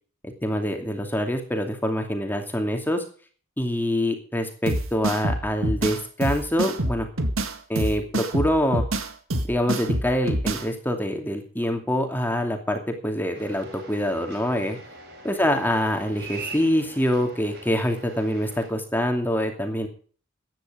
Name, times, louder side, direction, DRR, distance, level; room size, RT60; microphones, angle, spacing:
voice 1, 0.2-3.0 3.6-7.1 7.7-8.8 9.4-14.8 15.2-19.9, equal, 10° left, 4 dB, 2.5 m, -25 dB
sound 1, 4.7-10.7, right 1 dB, 85° right, 1.9 m, -27 dB
sound 2, 13.4-18.7, right 3 dB, 55° right, 5.3 m, -42 dB
15.0 x 10.5 x 5.0 m, 0.41 s
head